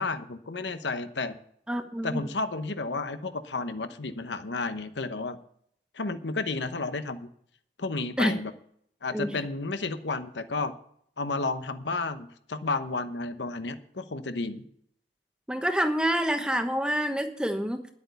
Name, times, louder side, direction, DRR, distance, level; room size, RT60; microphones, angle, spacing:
voice 1, 0.0-1.4 2.0-5.4 5.9-7.3 7.8-8.5 9.0-10.7 11.2-14.6, left 3 dB, 90° left, 10 dB, 1.0 m, -32 dB
voice 2, 1.7-2.2 8.2-8.4 9.1-9.3 15.5-17.9, equal, 5° right, 6 dB, 1.0 m, -27 dB
10.5 x 8.3 x 6.9 m, 0.66 s
head